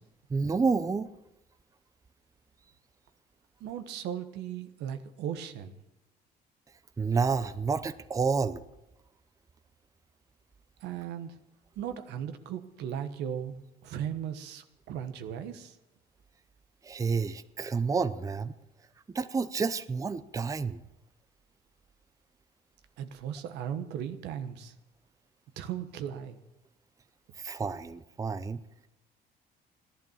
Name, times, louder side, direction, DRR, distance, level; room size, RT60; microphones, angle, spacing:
voice 1, 0.3-1.1 7.0-8.6 16.8-18.5 19.1-20.8 27.4-28.6, right 5 dB, 20° right, 12 dB, 0.6 m, -29 dB
voice 2, 3.6-5.7 10.8-11.3 11.8-15.7 23.0-24.7 25.6-26.4, right 9 dB, 85° right, 9 dB, 1.3 m, -37 dB
15.0 x 11.5 x 7.3 m, 0.90 s
cardioid pair, 110°, 17 cm